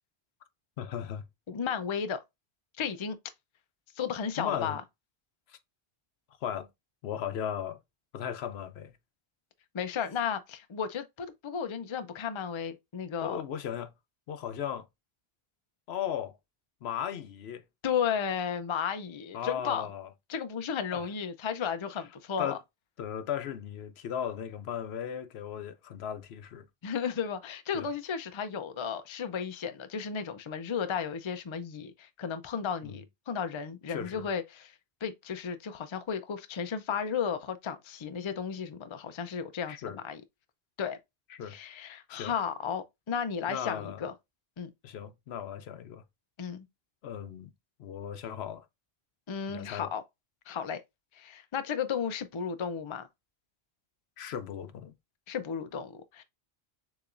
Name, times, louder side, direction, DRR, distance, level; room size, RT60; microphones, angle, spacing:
voice 1, 0.8-1.2 4.4-4.8 5.5-5.6 6.4-6.7 7.0-7.8 8.1-8.9 13.2-13.9 14.3-14.9 15.9-16.4 16.8-17.6 19.3-20.1 20.9-21.1 22.4-22.6 23.0-26.7 27.7-27.9 32.8-33.0 33.9-34.3 39.7-40.0 41.3-41.6 42.1-42.3 43.5-44.0 44.8-46.0 47.0-47.5 47.8-48.7 49.5-49.9 54.2-54.9, left 9 dB, 80° left, 0.9 m, -36 dB
voice 2, 1.5-2.2 2.8-3.2 4.0-4.8 9.7-13.4 17.8-19.9 20.3-22.6 26.8-34.7 35.0-40.2 40.8-41.0 41.5-44.1 44.6-44.7 46.4-46.7 49.3-50.0 50.5-50.8 51.1-53.1 55.3-56.2, left 7 dB, 40° left, 0.5 m, -34 dB
6.7 x 3.0 x 2.5 m
omnidirectional pair, 1.1 m